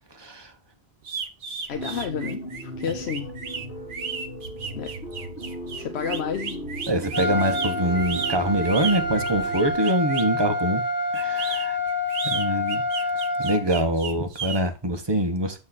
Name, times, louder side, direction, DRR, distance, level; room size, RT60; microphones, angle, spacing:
sound 1, 1.0-10.4 11.1-14.6, right 6 dB, 55° right, 1.0 m, -34 dB
voice 1, 1.7-3.3 4.8-4.9 5.8-6.7, left 7 dB, 85° left, 1.0 m, -31 dB
sound 2, 1.7-9.7, right 1 dB, 60° left, 4.1 m, -36 dB
voice 2, 6.9-10.8 11.1-11.8 12.2-12.8 13.4-15.6, right 1 dB, 25° right, 1.0 m, -24 dB
Trumpet, 7.1-13.6, left 2 dB, 10° left, 1.4 m, -27 dB
7.6 x 4.7 x 4.1 m
omnidirectional pair, 1.1 m